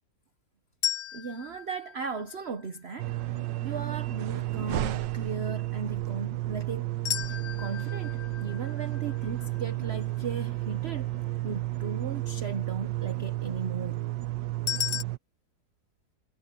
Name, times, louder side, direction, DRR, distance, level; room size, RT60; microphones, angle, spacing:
sound 1, 0.8-2.9 7.0-10.2 14.7-15.0, left 10 dB, 70° left, 0.6 m, -35 dB
voice 1, 1.1-3.1 3.6-6.9 7.3-11.1 11.4-14.1, right 5 dB, 45° right, 1.0 m, -37 dB
sound 2, 1.6-5.1 5.5-12.2, left 2 dB, 50° left, 6.8 m, -64 dB
sound 3, 3.0-15.2, right 16 dB, 85° right, 1.5 m, -32 dB
omnidirectional pair, 1.9 m